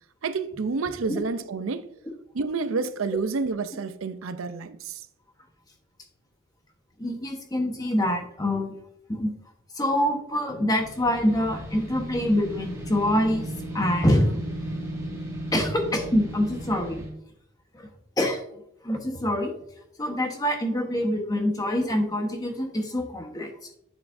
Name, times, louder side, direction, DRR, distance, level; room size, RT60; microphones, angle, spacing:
voice 1, 0.2-1.9 2.3-5.1, right 4 dB, 80° right, 0.6 m, -29 dB
voice 2, 7.0-8.8 9.1-9.3 9.8-14.4 15.5-17.0 17.7-17.9 18.2-18.4 18.8-19.5 20.0-23.5, left 1 dB, 20° left, 1.2 m, -25 dB
sound 1, 10.8-17.1, right 1 dB, 15° right, 2.9 m, -35 dB
9.2 x 7.2 x 2.6 m
head